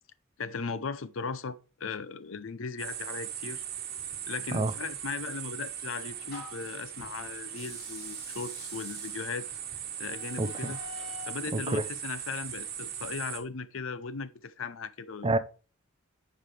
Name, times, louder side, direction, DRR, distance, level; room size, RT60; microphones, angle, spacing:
voice 1, 0.4-3.6 4.3-9.5 10.0-10.8 11.3-15.3, left 5 dB, 70° left, 0.6 m, -37 dB
sound 1, 2.8-13.4, right 9 dB, 50° right, 1.4 m, -39 dB
sound 2, 4.9-6.8 7.5-11.4, left 3 dB, 50° left, 3.4 m, -48 dB
voice 2, 10.4-10.8 11.5-11.9 15.2-15.4, right 2 dB, 25° right, 0.6 m, -28 dB
9.9 x 5.3 x 3.3 m
head